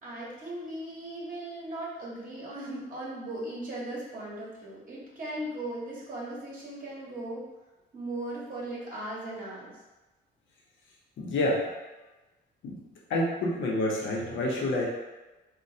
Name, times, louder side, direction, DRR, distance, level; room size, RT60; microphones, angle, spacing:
voice 1, 0.0-7.5 7.9-9.8, right 1 dB, 45° right, -6 dB, 0.9 m, -38 dB
voice 2, 11.2-11.6 12.6-12.8 13.1-14.8, left 1 dB, 70° left, -3 dB, 0.8 m, -28 dB
3.0 x 2.2 x 2.7 m, 1.1 s
cardioid pair, 90°, 20 cm